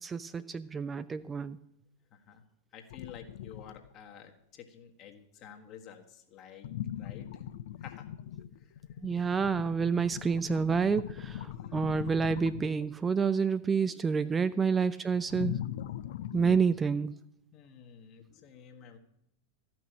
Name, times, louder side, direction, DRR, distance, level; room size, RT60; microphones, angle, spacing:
voice 1, 0.0-1.6 9.0-15.6 16.3-17.1, right 5 dB, 15° right, 13 dB, 0.4 m, -29 dB
voice 2, 2.1-2.4 2.7-6.7 7.0-7.4 7.8-8.1 8.6-8.8 10.5-10.6 11.5-12.1 12.9-13.0 13.9-14.6 17.5-19.0, left 8 dB, 35° left, 4 dB, 1.6 m, -51 dB
sound 1, 2.9-3.9 6.6-12.9 15.3-16.6, left 11 dB, 55° left, 0.5 m, -40 dB
13.5 x 6.1 x 8.6 m, 0.77 s
figure-of-eight pair, 90°, 0 cm